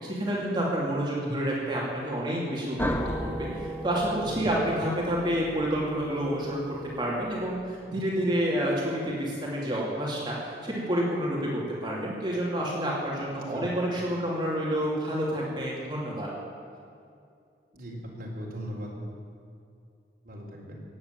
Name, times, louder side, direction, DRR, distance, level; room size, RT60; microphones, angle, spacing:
voice 1, 0.0-10.4 10.6-16.3, equal, 25° right, -5 dB, 2.7 m, -29 dB
sound 1, 2.8-7.5, equal, 10° left, 0.9 m, -35 dB
voice 2, 4.2-4.6 13.3-13.7 17.7-18.9 20.2-20.8, equal, 55° right, -2 dB, 3.8 m, -39 dB
17.0 x 8.3 x 9.0 m, 2.4 s
head